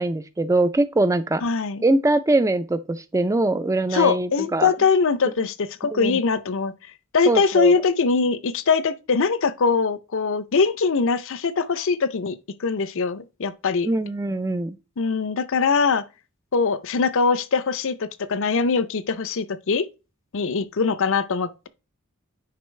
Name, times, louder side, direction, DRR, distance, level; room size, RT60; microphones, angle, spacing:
voice 1, 0.0-1.4 1.8-4.7 5.8-6.2 7.3-7.7 13.9-14.8, right 2 dB, 15° right, 0.4 m, -22 dB
voice 2, 1.4-1.8 3.9-6.7 7.1-13.9 15.0-16.0 16.5-19.9 20.3-21.7, left 5 dB, 60° left, 0.6 m, -22 dB
9.4 x 5.4 x 3.2 m
head